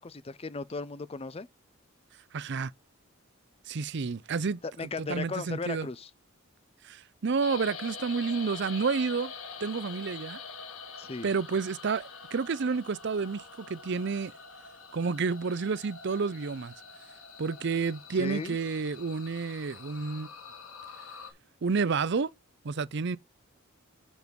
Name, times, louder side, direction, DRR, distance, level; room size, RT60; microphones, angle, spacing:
voice 1, 0.0-1.5 4.6-6.1 11.0-11.3 18.1-18.6, left 3 dB, 30° left, 0.5 m, -36 dB
voice 2, 2.3-2.7 3.7-5.9 6.8-9.3 9.6-10.4 11.2-14.3 14.9-16.7 17.4-20.3 21.6-22.3 22.6-23.2, right 5 dB, 55° right, 0.5 m, -30 dB
sound 1, 7.4-21.3, left 5 dB, 90° left, 2.0 m, -45 dB
7.1 x 6.3 x 5.3 m
head